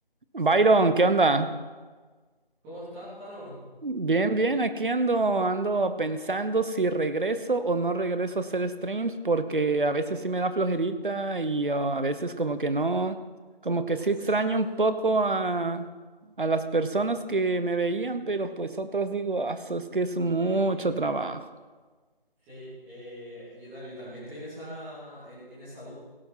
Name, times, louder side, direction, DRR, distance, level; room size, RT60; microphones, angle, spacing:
voice 1, 0.3-1.5 3.8-13.2 13.6-15.9 16.4-21.4, right 3 dB, 60° right, 11 dB, 1.1 m, -26 dB
voice 2, 2.6-3.6 13.8-14.3 20.4-20.9 22.4-25.9, equal, 5° right, -12 dB, 3.4 m, -42 dB
17.0 x 8.9 x 5.7 m, 1.4 s
figure-of-eight pair, 165°, 29 cm